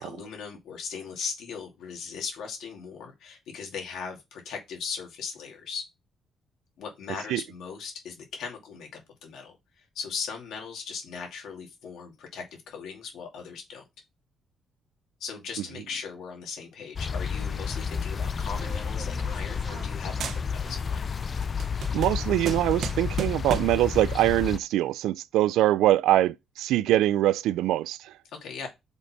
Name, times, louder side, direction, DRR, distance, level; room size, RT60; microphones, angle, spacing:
voice 1, 0.0-5.8 6.8-13.8 15.2-21.1 28.3-28.7, left 6 dB, 80° left, 2.4 m, -38 dB
sound 1, 17.0-24.6, left 6 dB, 40° left, 0.4 m, -31 dB
sound 2, 18.6-19.9 20.2-20.9 21.2-23.9, right 8 dB, 65° right, 0.8 m, -36 dB
voice 2, 21.9-28.1, right 14 dB, 90° right, 0.4 m, -23 dB
5.2 x 4.0 x 6.0 m
cardioid pair, 90°, 0 cm